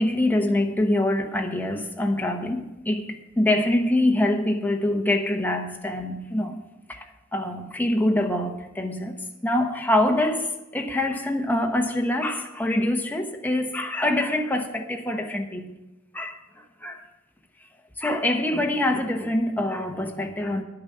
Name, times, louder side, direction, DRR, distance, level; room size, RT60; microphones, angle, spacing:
voice 1, 0.0-6.6 6.9-7.1 7.3-9.2 9.4-15.7 16.1-16.4 16.8-17.0 18.0-20.6, left 1 dB, 10° left, 3 dB, 1.0 m, -25 dB
10.5 x 8.8 x 5.5 m, 1.0 s
head